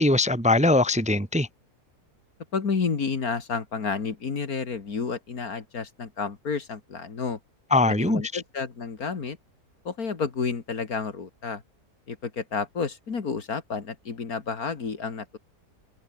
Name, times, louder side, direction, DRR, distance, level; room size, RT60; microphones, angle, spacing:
voice 1, 0.0-1.5 7.7-8.4, left 2 dB, 5° right, 1.1 m, -21 dB
voice 2, 2.5-7.4 7.9-9.4 9.8-11.6 12.1-15.3, left 5 dB, 70° left, 2.6 m, -30 dB
omnidirectional pair, 1.6 m